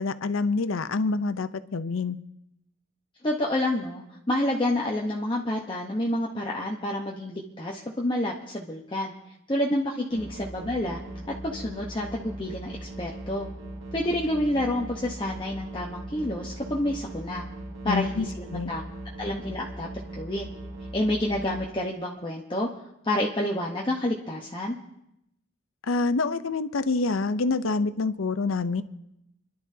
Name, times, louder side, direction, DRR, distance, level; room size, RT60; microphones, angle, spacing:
voice 1, 0.0-2.2 17.9-18.2 18.5-18.7 25.9-28.8, left 3 dB, 75° left, 13 dB, 0.6 m, -26 dB
voice 2, 3.2-9.1 9.5-11.0 11.3-13.5 13.9-17.4 17.8-18.8 19.2-20.5 20.9-22.7 23.0-24.8, left 1 dB, 25° left, -2 dB, 1.0 m, -29 dB
sound 1, 10.1-21.7, right 2 dB, 70° right, 2.0 m, -39 dB
29.0 x 11.5 x 2.8 m, 0.83 s
head